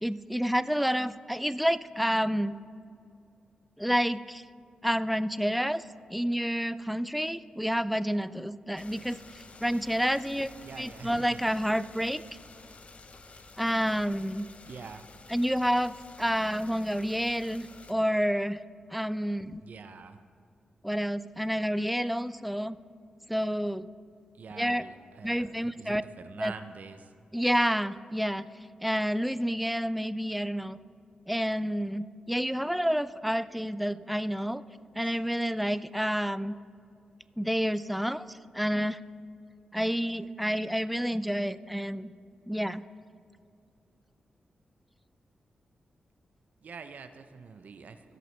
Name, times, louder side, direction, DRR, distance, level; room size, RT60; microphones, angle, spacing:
voice 1, 0.0-2.6 3.8-4.4 4.8-5.8 6.1-10.5 10.8-12.2 13.6-14.5 15.3-18.6 18.9-19.6 20.8-22.8 23.3-23.9 24.6-24.8 25.2-26.0 26.4-26.5 27.3-28.5 28.8-30.8 31.3-34.6 35.0-36.5 37.4-39.0 39.7-42.1 42.5-42.8, equal, ahead, 15 dB, 0.3 m, -29 dB
sound 1, 8.8-17.9, left 3 dB, 50° left, 0.6 m, -51 dB
voice 2, 10.6-11.4 14.7-15.1 19.6-20.2 24.4-27.1 35.0-35.2 46.6-48.2, right 5 dB, 70° right, 9 dB, 0.5 m, -45 dB
16.0 x 6.5 x 3.3 m, 2.4 s
cardioid pair, 50°, 3 cm